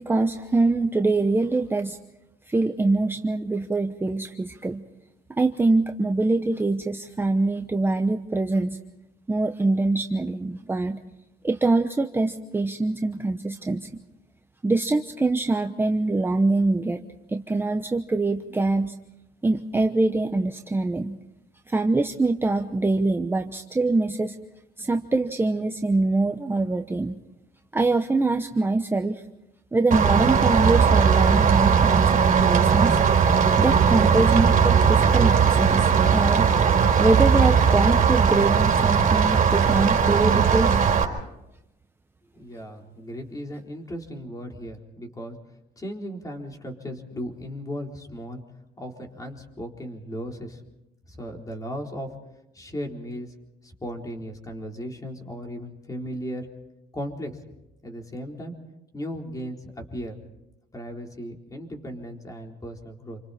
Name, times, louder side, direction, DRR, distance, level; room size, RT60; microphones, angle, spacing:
voice 1, 0.0-2.0 2.5-4.8 5.4-8.8 9.3-11.0 11.4-13.9 14.6-17.0 17.3-18.9 19.4-21.2 21.7-24.4 24.8-27.1 27.7-29.2 29.7-33.0 33.6-36.5 37.0-40.8, right 2 dB, 15° right, 6 dB, 0.9 m, -24 dB
Rain, 29.9-41.0, right 6 dB, 50° right, 4.0 m, -19 dB
voice 2, 42.4-45.4 45.8-48.4 48.8-50.6 51.1-52.1 52.5-53.3 53.6-56.5 56.9-57.3 57.8-58.5 58.9-60.2 60.7-63.2, equal, 20° left, 2 dB, 4.1 m, -36 dB
28.5 x 25.0 x 4.3 m, 0.90 s
cardioid pair, 110°, 17 cm